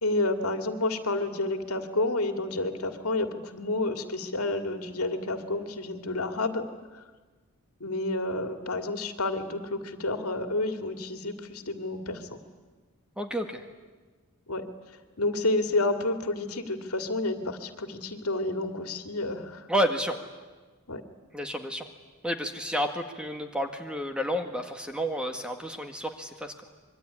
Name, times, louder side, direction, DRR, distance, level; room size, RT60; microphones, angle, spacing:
voice 1, 0.0-6.7 6.9-7.0 7.8-12.4 14.5-14.7 15.2-19.7 20.9-21.0, left 2 dB, 85° left, 7 dB, 2.3 m, -30 dB
voice 2, 13.2-13.6 19.7-20.2 21.3-21.9 22.2-26.5, equal, 5° right, 5 dB, 1.8 m, -30 dB
25.0 x 23.5 x 9.8 m, 1.3 s
head